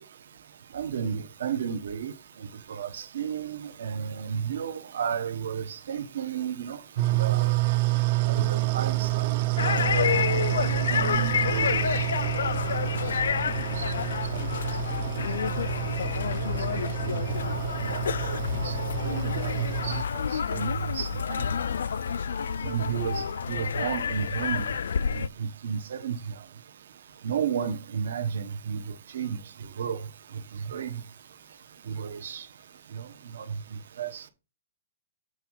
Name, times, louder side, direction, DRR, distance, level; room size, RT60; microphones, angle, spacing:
voice 1, 0.7-7.9 8.2-16.2 16.5-22.0 22.6-24.8 25.1-26.5 27.2-31.1 31.8-32.5 32.9-34.3, right 7 dB, 60° right, 1.0 m, -34 dB
sound 1, 7.0-20.0, right 17 dB, 30° right, 0.5 m, -28 dB
sound 2, 9.6-25.3, left 7 dB, 80° left, 0.3 m, -29 dB
7.9 x 3.6 x 6.1 m
hypercardioid pair, 180°, 0 cm